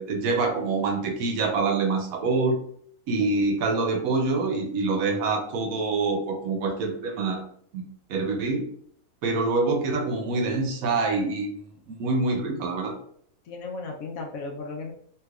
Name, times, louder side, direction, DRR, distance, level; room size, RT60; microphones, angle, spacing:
voice 1, 0.0-2.6 3.1-7.4 7.7-7.8 8.1-8.6 9.2-12.9, right 3 dB, 75° right, 3 dB, 1.0 m, -26 dB
voice 2, 13.5-14.9, left 3 dB, 70° left, 2 dB, 1.0 m, -36 dB
3.2 x 2.7 x 2.3 m, 0.62 s
omnidirectional pair, 1.6 m